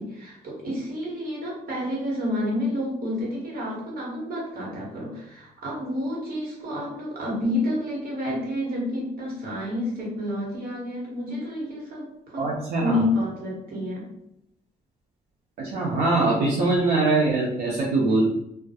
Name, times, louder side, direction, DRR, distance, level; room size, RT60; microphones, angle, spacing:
voice 1, 0.0-12.5 12.8-14.0, left 1 dB, 65° right, -4 dB, 1.2 m, -29 dB
voice 2, 12.4-13.0 15.6-18.3, right 2 dB, 90° right, -4 dB, 0.5 m, -22 dB
2.2 x 2.0 x 2.7 m, 0.79 s
cardioid pair, 85°, 16 cm